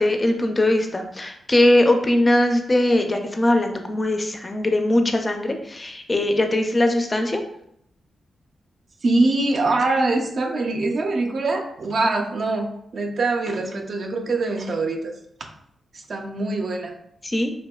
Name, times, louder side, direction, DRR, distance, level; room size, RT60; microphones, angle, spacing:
voice 1, 0.0-7.4 17.2-17.5, left 1 dB, 25° left, 5 dB, 0.3 m, -20 dB
voice 2, 9.0-15.0 15.9-16.9, right 2 dB, 60° right, 3 dB, 0.3 m, -23 dB
2.7 x 2.1 x 2.3 m, 0.73 s
cardioid pair, 70°, 0 cm